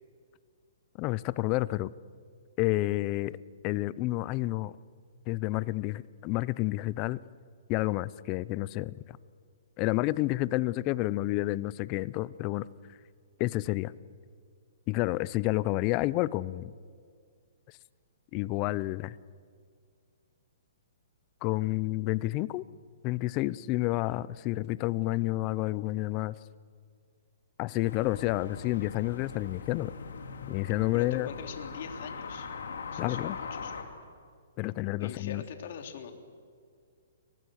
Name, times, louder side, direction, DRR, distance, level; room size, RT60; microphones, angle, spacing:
voice 1, 1.0-1.9 2.6-3.4 3.6-4.7 5.3-7.2 7.7-9.2 9.8-12.7 13.4-13.9 14.9-16.7 18.3-19.2 21.4-22.6 23.0-26.4 27.6-29.9 30.4-31.3 33.0-33.4 34.6-35.4, left 18 dB, 30° left, 20 dB, 0.6 m, -30 dB
sound 1, 27.9-33.8, left 5 dB, 85° left, 3.5 m, -41 dB
voice 2, 30.9-32.5 32.9-33.9 35.0-36.1, left 7 dB, 55° left, 5 dB, 3.3 m, -43 dB
30.0 x 23.5 x 6.6 m, 2.1 s
hypercardioid pair, 155°, 0 cm